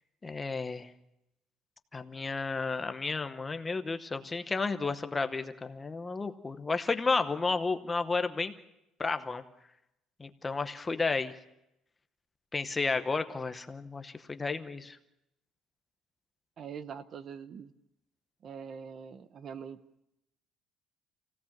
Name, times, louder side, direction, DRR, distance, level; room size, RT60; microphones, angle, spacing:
voice 1, 0.2-0.9 1.9-8.5 9.0-9.4 10.2-11.3 12.5-15.0, left 4 dB, 15° left, 9 dB, 0.9 m, -32 dB
voice 2, 16.6-17.7 18.4-19.8, right 7 dB, 35° right, 13 dB, 0.8 m, -43 dB
27.5 x 17.0 x 7.3 m, 0.88 s
cardioid pair, 175°, 0 cm